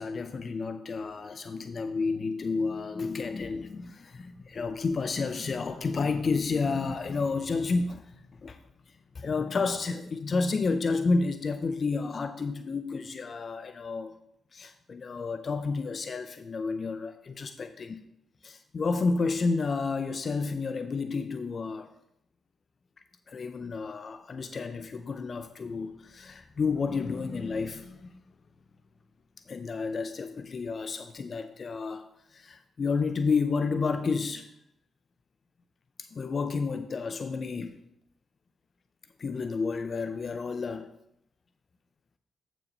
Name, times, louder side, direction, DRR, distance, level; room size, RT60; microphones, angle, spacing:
voice 1, 0.0-8.0 8.4-8.6 9.2-14.1 14.5-18.0 18.4-21.9 23.3-28.1 29.5-32.1 32.3-34.5 36.0-37.8 39.2-40.9, left 4 dB, 50° left, 0.5 m, -30 dB
8.6 x 6.1 x 4.0 m
hypercardioid pair, 45°, 0 cm